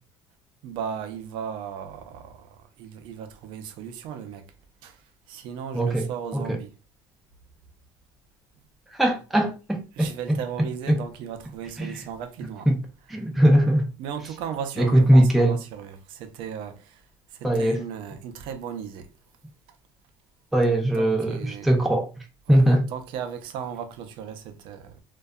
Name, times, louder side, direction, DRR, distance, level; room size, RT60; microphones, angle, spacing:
voice 1, 0.6-4.5 4.8-5.0 5.3-6.7 10.0-12.7 14.0-17.0 17.3-19.1 21.0-21.8 22.5-22.6 22.9-25.0, right 8 dB, 70° right, 0.4 m, -36 dB
voice 2, 5.7-6.1 6.3-6.6 8.9-11.0 11.8-12.0 12.7-12.8 13.1-13.9 14.8-15.6 17.4-17.8 20.5-22.1 22.5-22.9, right 1 dB, ahead, 0.3 m, -21 dB
2.6 x 2.2 x 2.2 m
cardioid pair, 150°, 9 cm